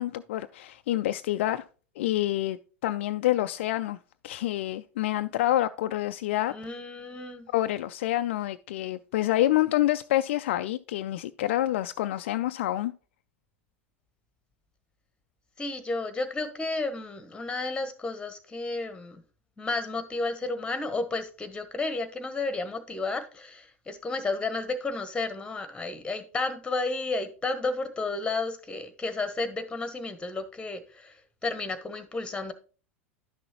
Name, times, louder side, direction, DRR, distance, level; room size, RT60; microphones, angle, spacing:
voice 1, 0.0-1.6 2.0-4.0 4.2-6.5 7.5-12.9, left 14 dB, 60° left, 0.3 m, -27 dB
voice 2, 6.5-7.5 15.6-19.2 19.6-31.1 31.4-32.5, left 3 dB, 15° left, 1.2 m, -32 dB
11.0 x 6.1 x 3.0 m
figure-of-eight pair, 85°, 7 cm